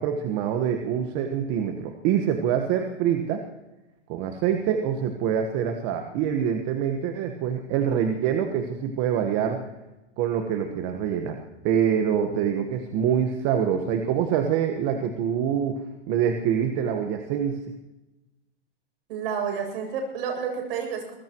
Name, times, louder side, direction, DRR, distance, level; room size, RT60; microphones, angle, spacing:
voice 1, 0.0-3.4 4.1-9.6 10.2-15.8 16.1-17.6, right 8 dB, 35° right, 5 dB, 1.4 m, -25 dB
voice 2, 19.1-21.2, right 6 dB, 55° right, 2 dB, 7.6 m, -30 dB
23.0 x 20.5 x 3.1 m, 1.0 s
hypercardioid pair, 140°, 35 cm